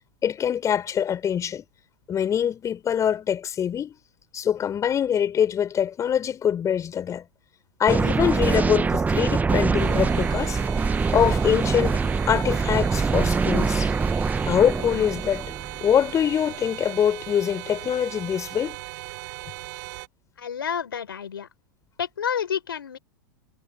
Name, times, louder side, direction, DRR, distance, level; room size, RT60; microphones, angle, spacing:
voice 1, 0.2-1.6 2.1-3.9 4.3-7.2 7.8-10.6 11.1-13.9 14.5-15.5 15.8-18.8, left 9 dB, 25° left, 5.6 m, -24 dB
sound 1, 7.9-16.0, right 4 dB, 15° right, 1.1 m, -24 dB
sound 2, 9.8-20.1, right 23 dB, 55° right, 7.1 m, -38 dB
voice 2, 20.4-21.5 22.0-23.0, left 8 dB, 80° left, 4.2 m, -29 dB
hypercardioid pair, 95°, 12 cm